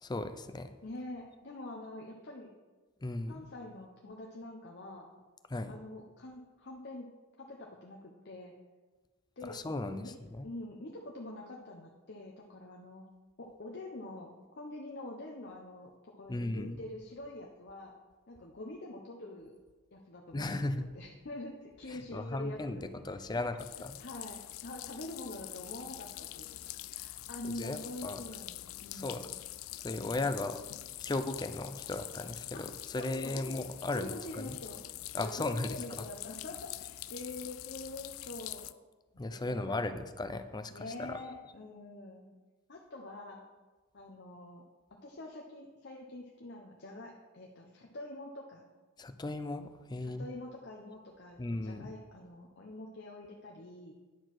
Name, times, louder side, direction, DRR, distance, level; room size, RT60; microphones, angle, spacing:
voice 1, 0.0-0.7 3.0-3.5 5.5-5.8 9.5-10.5 16.3-16.8 20.3-20.9 21.9-22.8 23.0-24.0 27.6-28.2 28.9-29.2 29.8-30.6 31.0-34.6 35.1-36.1 39.2-40.7 41.0-41.2 49.0-50.3 51.4-51.9, left 2 dB, 20° left, 10 dB, 0.5 m, -36 dB
voice 2, 0.8-2.5 3.3-5.1 5.7-7.1 7.4-8.5 9.4-9.6 10.0-10.1 10.4-13.1 13.4-18.0 18.3-19.5 19.9-23.5 24.0-29.3 29.9-30.3 32.5-32.6 32.9-33.1 33.3-33.4 33.9-34.8 35.2-38.7 39.3-39.9 40.7-42.2 42.7-43.4 43.9-44.6 44.9-48.6 50.0-53.9, left 2 dB, 55° left, 0 dB, 0.9 m, -46 dB
sound 1, 23.6-38.7, left 16 dB, 85° left, 0.4 m, -45 dB
10.0 x 4.6 x 6.0 m, 1.2 s
head